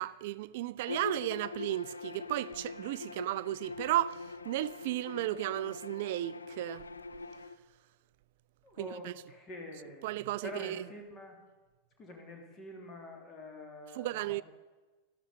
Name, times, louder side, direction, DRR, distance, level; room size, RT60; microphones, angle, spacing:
voice 1, 0.0-6.9 8.8-9.1 10.0-10.8 14.0-14.4, right 15 dB, 50° right, 0.4 m, -34 dB
Bowed string instrument, 0.8-7.6, left 3 dB, 75° left, 0.6 m, -43 dB
voice 2, 8.6-11.4 12.0-14.4, left 2 dB, 25° left, 3.0 m, -46 dB
13.0 x 13.0 x 5.5 m
figure-of-eight pair, 90°, 0 cm